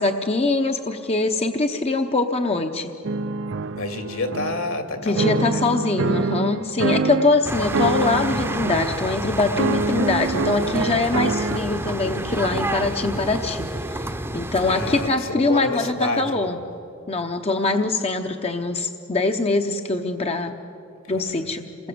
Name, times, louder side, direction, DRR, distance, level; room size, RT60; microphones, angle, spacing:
voice 1, 0.0-2.9 5.0-16.6 17.1-20.6 21.1-21.7, left 3 dB, 30° left, 5 dB, 0.8 m, -23 dB
sound 1, 3.0-4.8 5.2-7.4 7.7-9.0 9.6-11.6, right 3 dB, 60° right, 0.6 m, -25 dB
voice 2, 3.7-5.7 14.7-16.6 21.1-21.5, left 2 dB, 70° left, 6 dB, 2.5 m, -29 dB
sound 2, 7.4-15.1, right 1 dB, 10° right, 0.8 m, -29 dB
27.5 x 20.5 x 7.8 m, 2.7 s
head